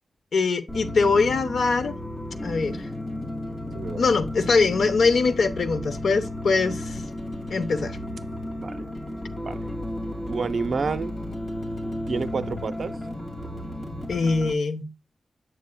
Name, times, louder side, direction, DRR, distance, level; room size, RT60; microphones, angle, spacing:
voice 1, 0.3-2.0 2.4-2.9 4.0-7.0 7.5-8.0 14.1-14.9, left 4 dB, 80° left, 0.9 m, -22 dB
sound 1, 0.7-14.5, left 1 dB, 40° left, 2.3 m, -33 dB
voice 2, 8.6-8.9 9.4-9.7 10.3-11.1 12.1-13.0, right 4 dB, 55° right, 0.6 m, -29 dB
8.6 x 7.4 x 2.3 m
wide cardioid pair, 180°, 0 cm